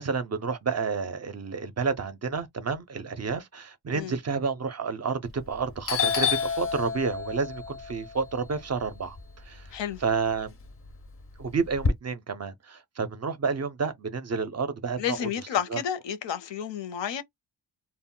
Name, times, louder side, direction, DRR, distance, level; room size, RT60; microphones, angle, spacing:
voice 1, 0.0-9.2 9.5-9.7 10.0-10.5 11.4-15.2 15.7-15.8, right 5 dB, 40° right, 0.4 m, -30 dB
Doorbell, 5.3-5.6 5.9-10.0 10.4-11.9, left 6 dB, 35° left, 0.4 m, -29 dB
voice 2, 9.7-10.0 15.0-17.2, left 9 dB, 75° left, 0.6 m, -31 dB
2.1 x 2.1 x 3.6 m
wide cardioid pair, 140°, 45 cm